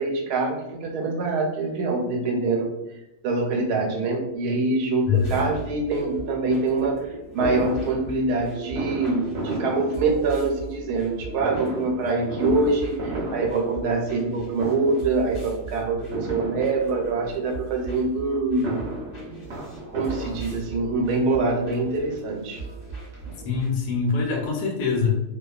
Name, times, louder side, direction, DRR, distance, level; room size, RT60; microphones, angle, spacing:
voice 1, 0.0-2.7 3.2-18.8 19.9-22.6, right 3 dB, 85° right, 1 dB, 1.1 m, -25 dB
voice 2, 5.1-5.4 23.4-25.2, left 5 dB, 90° left, 1 dB, 1.1 m, -24 dB
sound 1, 5.1-23.7, right 3 dB, 45° left, 0.8 m, -39 dB
Fireworks, 7.4-10.6 11.4-14.3 14.5-15.2 16.1-17.2 18.4-21.0 21.8-21.9 22.2-22.3 22.6-23.9 24.2-24.3 24.4-24.5, right 1 dB, 60° right, 0.8 m, -34 dB
2.7 x 2.2 x 2.3 m, 0.96 s
omnidirectional pair, 1.6 m